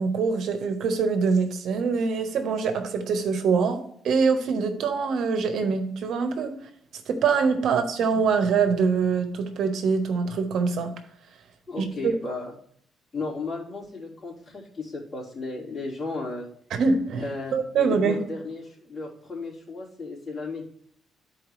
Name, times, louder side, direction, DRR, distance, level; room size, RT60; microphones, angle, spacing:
voice 1, 0.0-6.5 7.1-10.9 11.8-12.1 16.7-17.3 17.5-18.2, right 5 dB, 70° right, 7 dB, 1.2 m, -24 dB
voice 2, 11.7-12.5 13.1-16.5 17.1-20.7, left 3 dB, 25° left, -8 dB, 3.7 m, -34 dB
12.0 x 4.7 x 3.2 m, 0.64 s
cardioid pair, 90°, 0 cm